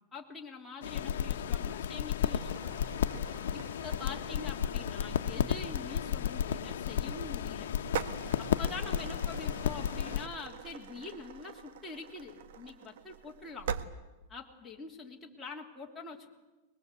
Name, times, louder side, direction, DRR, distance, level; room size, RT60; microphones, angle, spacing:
voice 1, 0.1-2.8 3.5-7.7 8.4-13.7 14.3-16.3, left 4 dB, 10° left, -3 dB, 2.8 m, -45 dB
sound 1, 0.8-10.3, left 9 dB, 85° left, 1.0 m, -33 dB
sound 2, 2.2-13.9, right 7 dB, 70° right, 1.5 m, -44 dB
23.5 x 21.0 x 8.2 m, 1.1 s
supercardioid pair, 160°, 0 cm